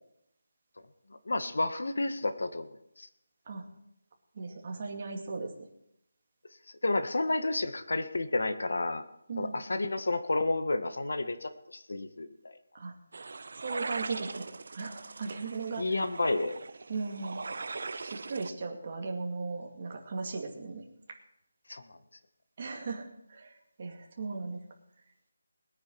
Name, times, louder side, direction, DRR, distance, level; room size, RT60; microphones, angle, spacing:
voice 1, 1.2-3.1 6.8-9.0 9.4-12.6 15.8-16.6 21.7-22.0, left 2 dB, 75° left, 9 dB, 1.7 m, -31 dB
voice 2, 4.3-5.5 9.3-9.6 12.7-12.9 13.6-14.4 14.7-15.9 16.9-17.4 18.0-20.8 22.6-24.6, right 4 dB, 30° right, 1 dB, 2.2 m, -37 dB
sound 1, 13.1-18.5, right 3 dB, 50° right, 0.6 m, -40 dB
21.0 x 9.5 x 4.7 m, 0.78 s
figure-of-eight pair, 175°, 0 cm